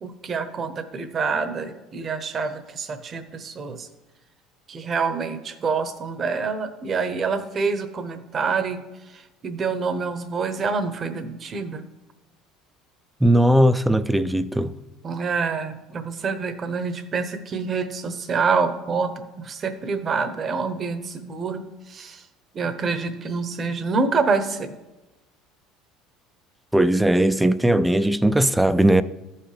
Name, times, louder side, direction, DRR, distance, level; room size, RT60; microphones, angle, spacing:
voice 1, 0.0-3.9 4.7-8.8 9.1-11.8 15.0-22.2 22.5-24.7, right 5 dB, 40° right, 0.9 m, -27 dB
voice 2, 13.2-14.8 26.7-29.0, right 1 dB, 5° right, 0.4 m, -18 dB
14.0 x 5.7 x 3.3 m
supercardioid pair, 95°, 0 cm